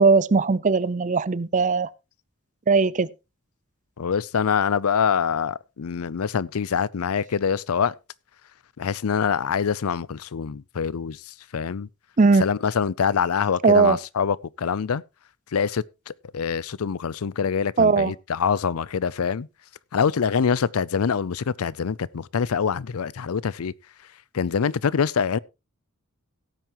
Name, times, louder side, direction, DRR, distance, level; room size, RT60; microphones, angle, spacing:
voice 1, 0.0-1.9 2.7-3.1 12.2-12.4 13.6-14.0 17.8-18.1, right 4 dB, 35° right, 0.5 m, -18 dB
voice 2, 4.0-7.9 8.8-11.9 12.4-15.0 15.5-19.5 19.9-23.7 24.3-25.4, left 6 dB, 90° left, 0.5 m, -25 dB
17.0 x 9.1 x 3.0 m
head